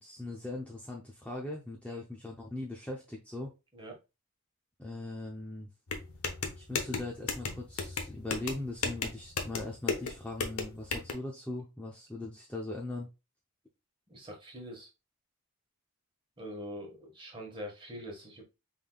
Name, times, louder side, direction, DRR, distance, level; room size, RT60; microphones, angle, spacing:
voice 1, 0.0-3.5 4.8-5.7 6.6-13.1, left 2 dB, 5° left, 0.6 m, -40 dB
sound 1, 5.9-11.1, left 4 dB, 70° left, 0.9 m, -35 dB
voice 2, 14.1-14.9 16.4-18.4, equal, 25° right, 1.4 m, -44 dB
5.6 x 3.5 x 2.3 m
head